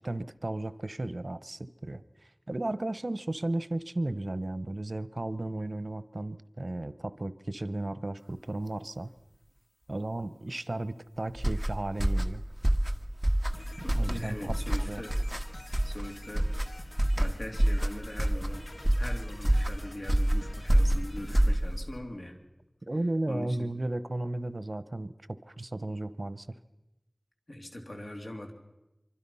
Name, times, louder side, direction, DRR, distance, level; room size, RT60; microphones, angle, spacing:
voice 1, 0.0-2.0 2.5-9.1 9.9-12.4 13.9-14.6 14.9-15.0 22.9-26.5, right 2 dB, 65° right, 14 dB, 0.9 m, -34 dB
sound 1, 11.4-22.0, right 1 dB, 10° right, 1.6 m, -27 dB
sound 2, 13.5-21.5, left 1 dB, 60° left, 1.6 m, -48 dB
voice 2, 13.8-15.1 15.8-16.5 17.2-18.6 18.9-22.4 23.3-23.7 27.5-28.5, left 1 dB, 80° left, 3 dB, 3.1 m, -41 dB
25.5 x 24.5 x 5.6 m, 0.99 s
wide cardioid pair, 45°, 0 cm